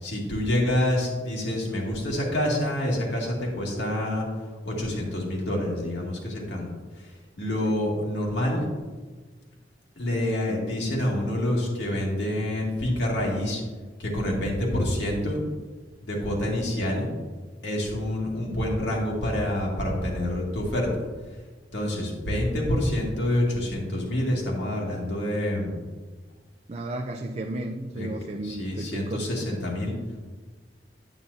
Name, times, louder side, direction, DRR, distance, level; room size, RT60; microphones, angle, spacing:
voice 1, 0.0-4.2 4.6-6.7 7.0-8.7 10.0-13.6 14.0-15.4 16.0-17.1 17.6-20.9 21.7-25.7 28.0-28.1 28.4-29.9, left 1 dB, 70° left, -2 dB, 2.2 m, -27 dB
voice 2, 26.7-29.3, right 1 dB, 35° right, 3 dB, 0.4 m, -33 dB
9.2 x 8.7 x 2.7 m, 1.4 s
head